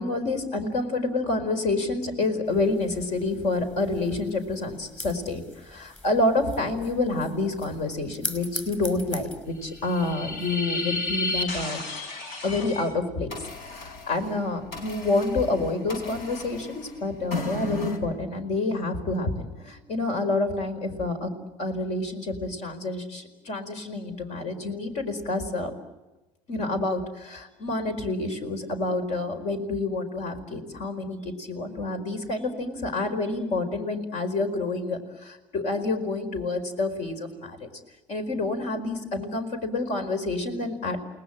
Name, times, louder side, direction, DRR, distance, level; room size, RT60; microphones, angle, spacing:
voice 1, 0.0-11.8 12.4-21.3 21.6-25.7 26.5-37.7 38.1-41.0, left 2 dB, 60° left, 8 dB, 4.9 m, -28 dB
fringe snipping, 2.5-10.6, left 1 dB, 15° left, 5.3 m, -42 dB
sound 1, 9.7-12.9 13.3-18.0, left 2 dB, 85° left, 4.7 m, -34 dB
29.5 x 20.0 x 9.0 m, 1.1 s
supercardioid pair, 105°, 13 cm